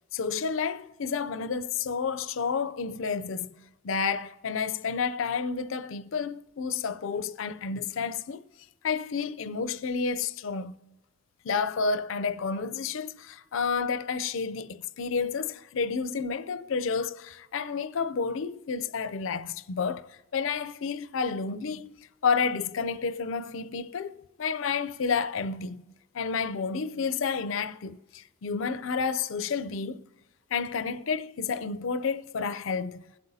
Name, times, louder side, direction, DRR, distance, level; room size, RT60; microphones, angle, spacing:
voice 1, 0.1-8.4 8.8-10.7 11.4-25.8 26.1-30.0 30.5-33.0, left 5 dB, 65° left, 0.5 m, -30 dB
20.5 x 7.9 x 2.7 m
head